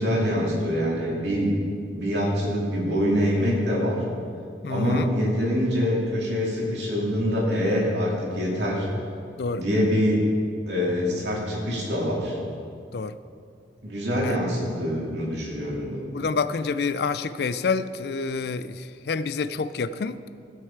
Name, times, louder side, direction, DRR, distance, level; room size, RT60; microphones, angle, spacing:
voice 1, 0.0-1.5 1.9-4.0 4.7-8.9 9.5-10.3 10.7-12.4 13.8-16.1, equal, 70° right, -4 dB, 2.7 m, -25 dB
voice 2, 4.6-5.1 9.4-9.6 12.9-13.2 14.2-14.4 16.1-20.2, left 4 dB, 60° left, 14 dB, 0.4 m, -28 dB
16.0 x 6.5 x 4.6 m, 2.3 s
head